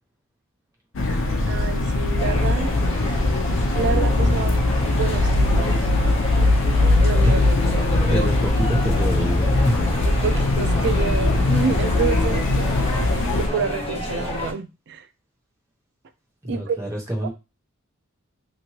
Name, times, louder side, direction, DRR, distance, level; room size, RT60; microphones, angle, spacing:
sound 1, 0.9-13.5, left 2 dB, 65° left, 0.5 m, -20 dB
voice 1, 1.4-2.9 3.8-5.9 7.0-7.4 10.0-12.7 13.4-15.1 16.5-16.8 17.2-17.3, right 5 dB, 55° right, 0.4 m, -28 dB
sound 2, 2.2-14.5, left 1 dB, 30° left, 0.7 m, -30 dB
voice 2, 8.1-9.9 16.5-17.3, equal, 15° right, 1.0 m, -26 dB
3.0 x 2.6 x 2.8 m
head